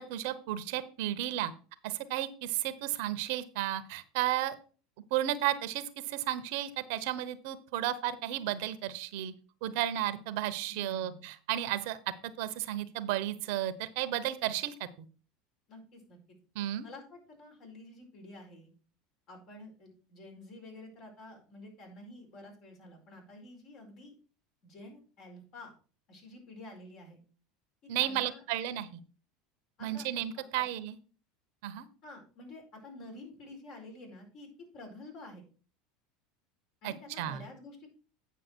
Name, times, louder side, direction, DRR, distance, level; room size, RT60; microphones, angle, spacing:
voice 1, 0.0-1.5 1.8-4.5 5.1-9.3 9.6-12.0 12.4-14.9 16.5-16.9 27.9-28.9 29.8-31.0 31.6-31.9 36.8-37.4, right 13 dB, 70° right, 13 dB, 0.9 m, -33 dB
voice 2, 10.7-11.3 15.7-16.2 16.8-18.7 19.3-24.1 24.6-25.7 26.1-27.2 28.0-28.6 29.8-30.1 30.5-30.6 32.0-34.5 34.7-35.4 36.8-37.9, left 2 dB, 55° left, 2 dB, 4.6 m, -49 dB
9.3 x 5.9 x 4.5 m, 0.38 s
supercardioid pair, 110°, 0 cm